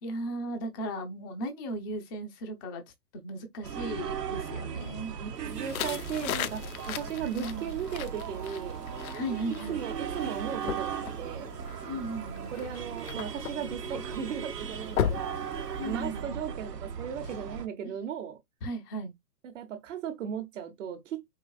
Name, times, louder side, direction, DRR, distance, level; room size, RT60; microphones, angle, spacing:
voice 1, 0.0-2.8 3.1-5.1 7.3-7.7 9.1-9.8 11.9-12.5 15.8-16.4 17.8-17.9 18.6-19.1, right 1 dB, 15° left, 0.5 m, -36 dB
sound 1, 3.6-17.7, right 7 dB, 80° right, 1.1 m, -37 dB
voice 2, 5.2-8.8 9.7-11.5 12.5-18.4 19.4-21.2, right 8 dB, 50° right, 1.1 m, -37 dB
sound 2, 5.5-16.2, left 9 dB, 65° left, 0.6 m, -38 dB
4.7 x 2.4 x 2.5 m
hypercardioid pair, 135°, 47 cm